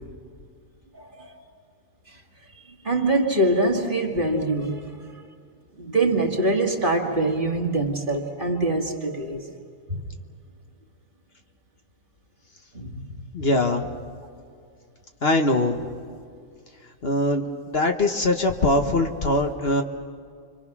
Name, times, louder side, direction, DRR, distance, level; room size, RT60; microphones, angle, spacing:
voice 1, 0.9-1.4 2.1-2.2 2.5-5.2 5.8-9.5 9.9-10.0 12.7-13.2 16.1-16.2, right 2 dB, 40° right, 1 dB, 2.3 m, -24 dB
voice 2, 13.3-13.9 15.2-15.8 17.0-19.8, left 2 dB, 45° left, 4 dB, 1.5 m, -22 dB
30.0 x 25.0 x 6.1 m, 2.3 s
omnidirectional pair, 1.4 m